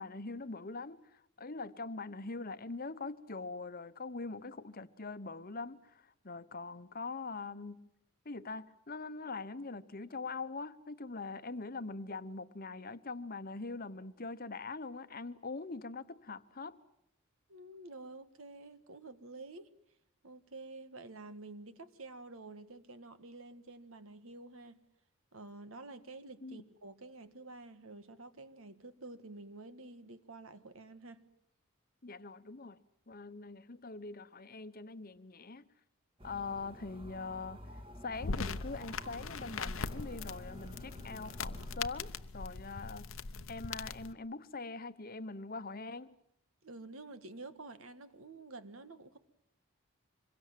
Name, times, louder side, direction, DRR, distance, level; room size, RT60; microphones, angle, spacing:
voice 1, 0.0-7.9 8.2-16.8 26.4-26.6 32.0-32.8 33.1-35.6 36.2-37.6 38.0-43.1 43.5-46.2, left 3 dB, 40° left, 1.0 m, -43 dB
voice 2, 17.5-19.7 20.2-24.8 25.3-31.2 46.6-49.2, right 2 dB, 70° right, 1.6 m, -49 dB
sound 1, 36.2-41.8, equal, 25° right, 2.1 m, -51 dB
sound 2, 38.1-44.1, left 4 dB, 65° left, 0.9 m, -41 dB
26.0 x 23.0 x 7.5 m
head